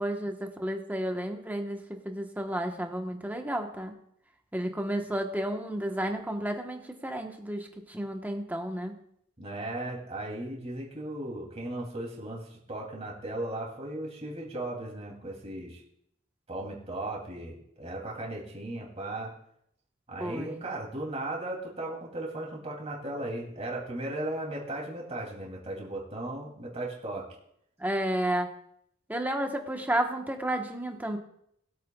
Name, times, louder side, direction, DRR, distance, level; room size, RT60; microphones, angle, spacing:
voice 1, 0.0-3.9 4.5-8.9 20.2-20.6 27.8-28.5 29.1-31.2, right 1 dB, 10° right, 3 dB, 1.1 m, -32 dB
voice 2, 9.4-15.8 16.5-19.3 20.1-27.3, right 1 dB, 35° right, -2 dB, 2.9 m, -36 dB
21.0 x 8.4 x 2.4 m, 0.72 s
head